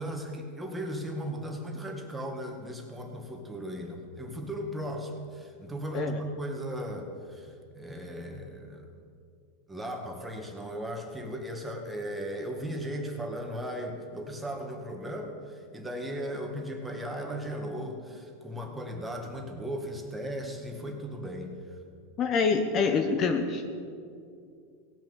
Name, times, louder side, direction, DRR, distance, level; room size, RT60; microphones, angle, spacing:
voice 1, 0.0-8.9 9.7-21.8, equal, 5° right, 2 dB, 1.8 m, -37 dB
voice 2, 22.2-23.6, left 5 dB, 35° left, 6 dB, 1.0 m, -26 dB
17.5 x 6.2 x 7.0 m, 2.3 s
supercardioid pair, 130°, 0 cm